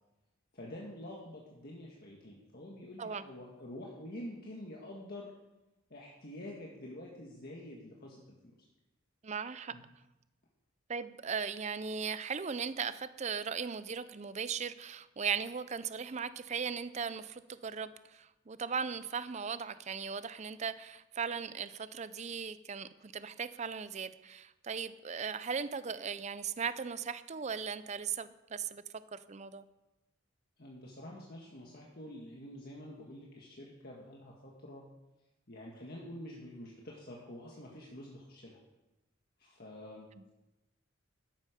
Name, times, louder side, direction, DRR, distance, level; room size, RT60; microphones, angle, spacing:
voice 1, 0.5-5.3 5.9-8.5 9.7-9.8 30.6-34.9 35.5-38.6 39.4-40.3, left 1 dB, 50° left, -2 dB, 1.7 m, -47 dB
voice 2, 9.2-9.7 10.9-28.8 29.1-29.6, right 6 dB, 35° right, 14 dB, 0.5 m, -38 dB
13.0 x 10.5 x 5.1 m, 1.0 s
head